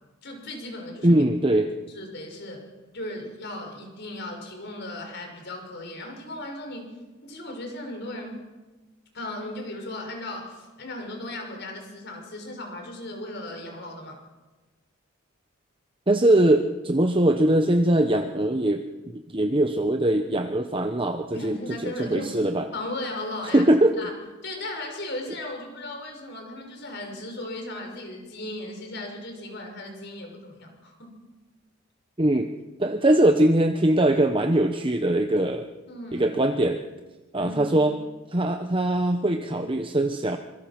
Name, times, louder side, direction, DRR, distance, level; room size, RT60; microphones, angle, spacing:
voice 1, 0.2-1.2 1.9-2.7 2.9-6.9 7.2-8.4 9.1-14.2 21.3-22.4 22.7-23.7 24.0-24.1 24.4-31.1 35.9-36.2 37.3-37.6, left 1 dB, 55° left, 3 dB, 6.2 m, -36 dB
voice 2, 1.0-1.7 16.1-22.6 23.5-23.9 32.2-32.5 32.8-35.7 36.1-36.8 37.3-37.9 38.3-40.4, right 1 dB, 25° right, 6 dB, 1.0 m, -22 dB
26.0 x 23.5 x 6.1 m, 1.2 s
head